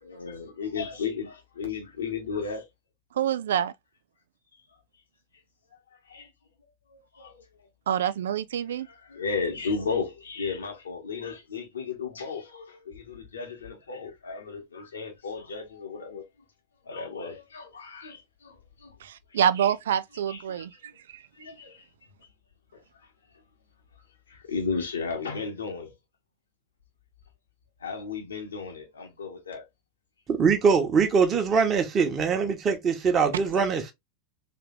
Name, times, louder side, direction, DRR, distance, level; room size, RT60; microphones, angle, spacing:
voice 1, 0.0-2.7 4.5-4.6 5.9-6.3 6.9-7.5 8.0-8.1 8.7-16.2 16.8-19.0 19.3-19.4 20.3-21.0 21.3-21.9 22.7-23.4 24.3-25.9 27.8-29.7, left 5 dB, 70° left, 1.5 m, -35 dB
voice 2, 3.2-3.7 7.9-8.9 19.0-20.7 21.1-21.2, right 9 dB, 60° right, 0.4 m, -26 dB
voice 3, 30.3-33.9, right 5 dB, 25° right, 1.2 m, -23 dB
3.5 x 3.4 x 3.3 m
figure-of-eight pair, 90°, 0 cm